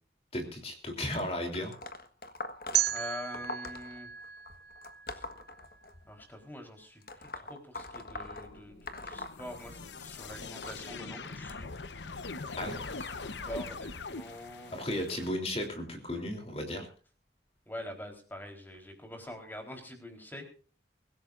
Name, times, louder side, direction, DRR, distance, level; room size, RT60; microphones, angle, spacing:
voice 1, 0.3-1.7 12.6-12.8 14.7-16.9, left 1 dB, 35° left, 4 dB, 3.4 m, -35 dB
sound 1, 1.1-6.3 7.0-10.0 10.3-15.7 16.5-16.7 17.8-17.9 18.7-18.8 19.5-19.6, left 2 dB, 55° left, 1.5 m, -45 dB
sound 2, 2.7-5.7, right 12 dB, 70° right, 0.8 m, -34 dB
voice 2, 2.9-4.1 5.1-5.2 6.1-11.7 12.6-13.2 13.4-14.9 17.7-20.4, left 1 dB, 10° left, 3 dB, 4.0 m, -45 dB
sound 3, 8.2-15.3, left 3 dB, 90° left, 1.0 m, -42 dB
24.5 x 16.0 x 2.6 m, 0.40 s
head